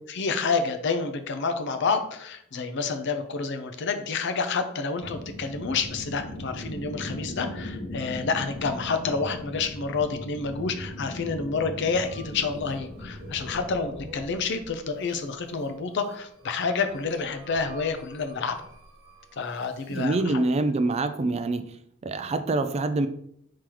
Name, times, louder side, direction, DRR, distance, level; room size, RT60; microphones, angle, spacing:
voice 1, 0.1-18.6 19.4-20.4, left 4 dB, 60° left, 8 dB, 0.5 m, -29 dB
sound 1, 5.0-13.9, left 1 dB, 75° left, 1.5 m, -38 dB
sound 2, 11.8-20.1, equal, 70° right, 1.1 m, -47 dB
voice 2, 19.9-21.7 22.0-23.1, right 2 dB, 30° right, 10 dB, 0.3 m, -25 dB
4.7 x 3.8 x 2.9 m, 0.70 s
head